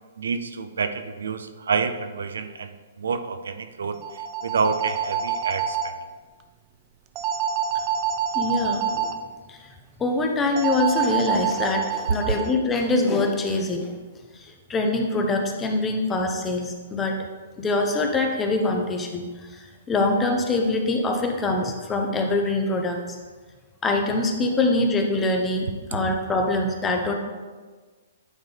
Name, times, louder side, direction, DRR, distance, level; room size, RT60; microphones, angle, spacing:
voice 1, 0.2-6.0, right 5 dB, 85° right, 9 dB, 0.5 m, -28 dB
sound 1, 3.9-5.9 7.2-9.2 10.6-12.5, right 7 dB, 30° right, 0.5 m, -27 dB
voice 2, 8.3-9.2 9.5-9.7 10.0-13.9 14.3-17.2 17.6-23.2 23.8-27.1, left 2 dB, 15° left, 3 dB, 0.7 m, -24 dB
9.3 x 3.8 x 3.5 m, 1.4 s
hypercardioid pair, 145°, 0 cm